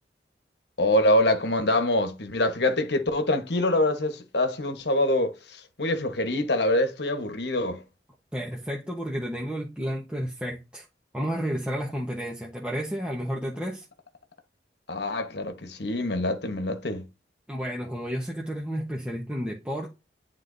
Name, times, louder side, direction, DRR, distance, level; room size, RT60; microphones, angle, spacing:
voice 1, 0.8-7.8 14.9-17.1, left 1 dB, 70° left, 1.2 m, -25 dB
voice 2, 8.3-10.8 11.1-13.8 17.5-19.9, equal, 5° right, 1.0 m, -31 dB
9.7 x 3.7 x 2.6 m
head